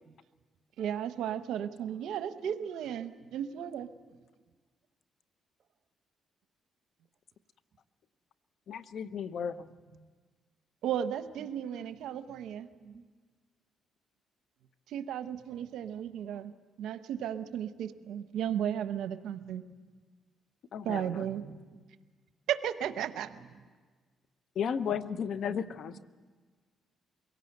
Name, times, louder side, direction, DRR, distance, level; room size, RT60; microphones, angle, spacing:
voice 1, 0.8-3.9 10.8-12.7 14.9-16.5 16.8-19.6 20.8-21.4 22.5-23.3, right 9 dB, 80° right, 11 dB, 0.8 m, -34 dB
voice 2, 1.3-2.0 3.2-3.3 9.0-9.1 9.4-10.1 11.4-11.5 11.9-13.0 15.3-16.3 17.2-17.5 17.9-18.1 18.9-19.9 21.1-21.8 23.1-23.7 24.9-26.0, right 6 dB, 50° right, 7 dB, 1.5 m, -54 dB
voice 3, 8.7-9.7 20.7-21.2 24.5-26.0, left 7 dB, 65° left, 14 dB, 0.7 m, -34 dB
23.0 x 17.5 x 7.9 m, 1.5 s
cardioid pair, 90°, 0 cm